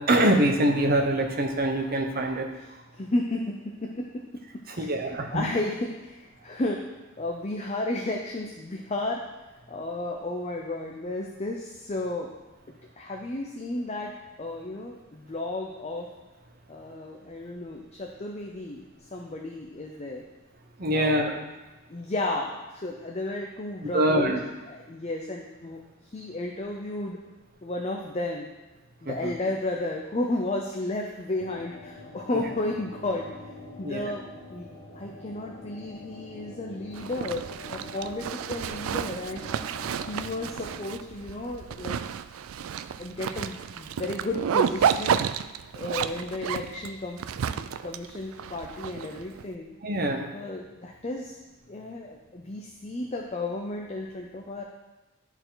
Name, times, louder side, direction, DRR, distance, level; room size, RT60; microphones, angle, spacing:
voice 1, 0.0-2.5 4.8-5.4 20.8-21.3 23.9-24.4 29.0-29.3 32.3-32.4 33.8-34.1 49.8-50.3, right 1 dB, 45° right, 3 dB, 0.9 m, -24 dB
voice 2, 2.9-6.9 7.2-9.2 9.7-12.3 12.7-14.1 14.4-16.1 16.7-20.2 20.9-21.4 21.9-24.4 24.7-27.2 27.6-28.5 29.0-33.5 33.8-34.7 34.9-39.4 39.9-42.0 43.0-45.2 45.7-47.2 47.6-49.7 50.3-51.4 51.7-54.6, left 2 dB, 30° left, 1 dB, 0.5 m, -33 dB
sound 1, 31.4-40.9, left 2 dB, 75° left, 1.4 m, -45 dB
Zipper (clothing), 36.9-49.4, right 8 dB, 80° right, 0.3 m, -31 dB
11.0 x 4.5 x 3.9 m, 1.1 s
head